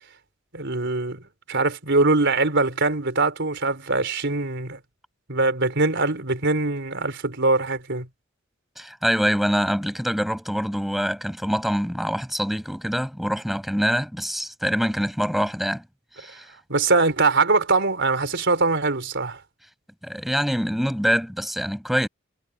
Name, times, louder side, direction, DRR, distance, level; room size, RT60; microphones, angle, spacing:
voice 1, 0.5-1.2 1.5-4.8 5.3-8.1 16.7-19.4, right 3 dB, 60° right, 4.6 m, -22 dB
voice 2, 8.8-15.8 16.2-16.5 20.0-22.1, equal, ahead, 7.1 m, -25 dB
head